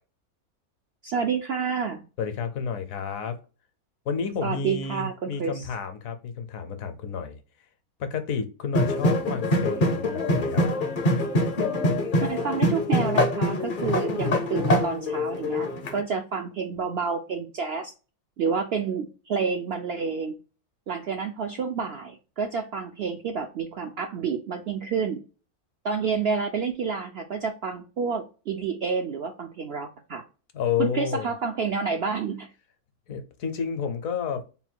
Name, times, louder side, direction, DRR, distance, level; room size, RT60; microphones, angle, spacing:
voice 1, 1.0-2.0 4.4-5.7 12.2-17.9 18.4-20.4 20.9-25.2 25.8-30.2 30.8-32.5, right 5 dB, 75° right, 0.5 m, -29 dB
voice 2, 2.2-3.4 4.1-7.4 8.0-10.7 30.5-31.3 33.1-34.4, left 6 dB, 70° left, 1.0 m, -30 dB
sound 1, 8.7-16.0, left 1 dB, 50° left, 0.6 m, -24 dB
3.7 x 2.2 x 4.3 m
omnidirectional pair, 1.6 m